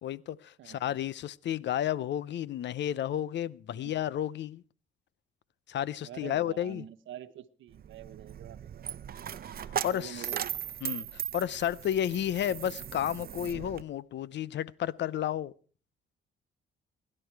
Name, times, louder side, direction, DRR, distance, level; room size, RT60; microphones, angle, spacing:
voice 1, 0.0-4.6 5.7-6.8 9.8-10.2 10.8-15.5, left 11 dB, 65° left, 0.7 m, -32 dB
voice 2, 6.0-9.1 9.7-10.5, right 11 dB, 75° right, 1.1 m, -46 dB
Coin (dropping), 7.7-13.8, right 9 dB, 50° right, 0.8 m, -38 dB
23.5 x 11.0 x 4.7 m
cardioid pair, 90°, 20 cm